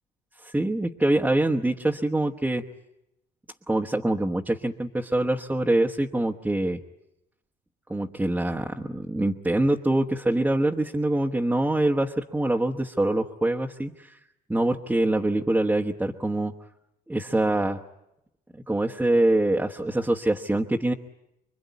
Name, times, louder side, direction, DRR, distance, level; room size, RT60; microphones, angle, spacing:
voice 1, 0.4-2.6 3.7-6.8 7.9-14.2 14.5-16.5 17.1-17.8 18.7-20.9, right 1 dB, 10° right, 2 dB, 1.2 m, -24 dB
26.0 x 23.0 x 9.5 m, 0.86 s
cardioid pair, 110°, 17 cm